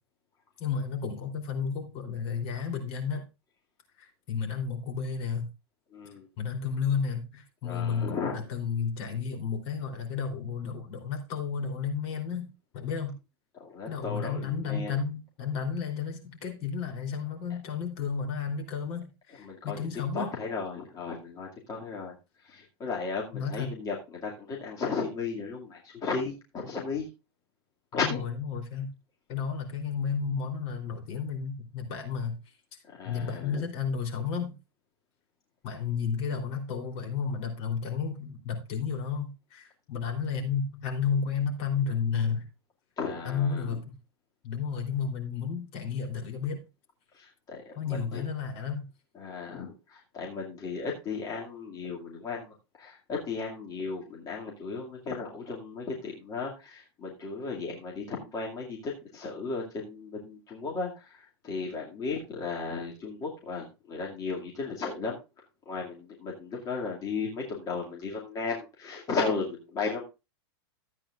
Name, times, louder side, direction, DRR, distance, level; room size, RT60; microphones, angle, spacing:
voice 1, 0.6-3.2 4.0-5.5 6.4-12.5 12.7-13.1 13.9-20.3 23.3-23.7 28.5-28.9 29.3-32.3 33.0-34.5 35.6-42.5 43.2-43.8 44.4-46.6 47.7-48.9, left 6 dB, 45° left, 3 dB, 3.5 m, -32 dB
voice 2, 5.9-6.3 7.6-8.4 13.5-15.1 19.4-27.1 27.9-28.3 32.8-33.6 43.0-43.8 47.1-48.3 49.1-70.0, left 4 dB, 25° left, -2 dB, 2.4 m, -35 dB
14.0 x 8.7 x 2.5 m, 0.28 s
hypercardioid pair, 135°, 14 cm